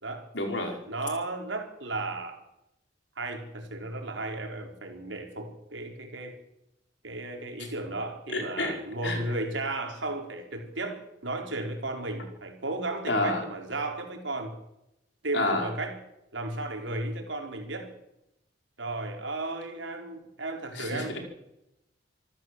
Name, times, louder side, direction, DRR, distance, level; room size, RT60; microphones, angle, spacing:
voice 1, 0.3-0.8 8.3-8.8 9.0-9.2 13.1-13.4 15.3-15.7 20.7-21.2, left 2 dB, 70° left, 3 dB, 5.1 m, -29 dB
voice 2, 0.9-2.4 3.2-6.4 7.0-14.6 15.2-16.0 16.3-17.9 18.8-21.1, right 2 dB, 80° right, 3 dB, 4.7 m, -34 dB
27.0 x 13.5 x 7.8 m, 0.86 s
head